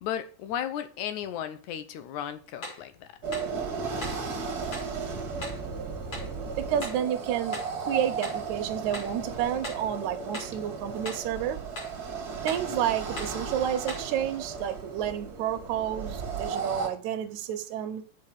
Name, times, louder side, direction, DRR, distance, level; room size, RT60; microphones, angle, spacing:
voice 1, 0.0-3.1, left 10 dB, 80° left, 2.2 m, -34 dB
sound 1, 2.6-2.9 3.3-3.5 4.0-4.3 4.7-4.9 5.4-5.6 6.1-6.3 6.8-7.1 7.5-7.8 8.2-8.5 8.9-9.2 9.6-9.9 10.3-10.6 11.0-11.3 11.8-12.0 12.5-12.7 13.2-13.4 13.9-14.1, left 1 dB, 45° left, 5.2 m, -39 dB
sound 2, 3.2-16.9, right 5 dB, 40° right, 1.7 m, -35 dB
voice 2, 6.4-7.6 7.9-11.6 12.4-18.0, right 10 dB, 75° right, 2.2 m, -30 dB
7.7 x 5.5 x 7.2 m
omnidirectional pair, 3.4 m